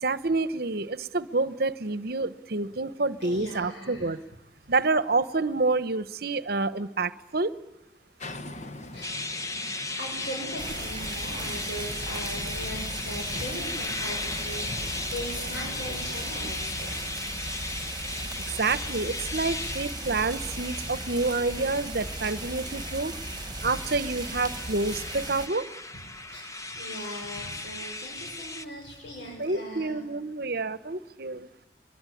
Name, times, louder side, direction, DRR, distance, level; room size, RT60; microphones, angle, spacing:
voice 1, 0.0-4.2 4.7-7.5 18.5-23.1 23.6-25.7 29.4-31.5, right 3 dB, 55° right, 14 dB, 1.0 m, -28 dB
voice 2, 3.2-4.2 8.9-9.2 9.9-17.0 23.6-23.7 26.3-30.0, equal, 65° left, 0 dB, 6.5 m, -39 dB
sound 1, 8.2-16.7, left 2 dB, 40° left, 1.3 m, -44 dB
sound 2, 9.0-28.6, left 2 dB, 15° left, 1.0 m, -36 dB
sound 3, 10.6-25.5, right 3 dB, 20° right, 1.6 m, -38 dB
25.0 x 22.0 x 9.9 m, 0.87 s
head